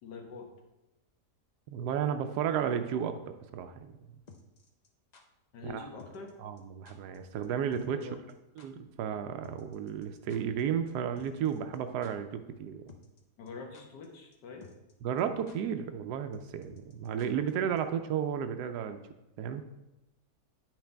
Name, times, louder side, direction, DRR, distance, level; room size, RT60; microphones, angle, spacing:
voice 1, 0.0-0.5 5.5-6.3 7.9-8.2 13.4-14.7, left 4 dB, 85° left, 2 dB, 1.8 m, -45 dB
voice 2, 1.7-3.9 5.6-5.9 6.4-8.0 8.6-12.8 15.0-19.0 19.4-19.6, right 8 dB, 80° right, 8 dB, 1.1 m, -33 dB
sound 1, 4.3-5.2 6.0-6.3 6.6-6.7 6.9-7.2 7.4-7.5 7.7-8.0 8.3-8.4 8.6-8.7 9.4-10.6 10.9-11.0 11.2-11.8 12.0-12.1 12.9-13.2 13.5-14.1 14.3-14.4 14.6-14.9 15.2-15.3 15.5-15.6 16.3-17.5 17.8-17.9, left 4 dB, 65° left, 0.4 m, -54 dB
9.1 x 5.9 x 3.4 m, 0.98 s
omnidirectional pair, 1.8 m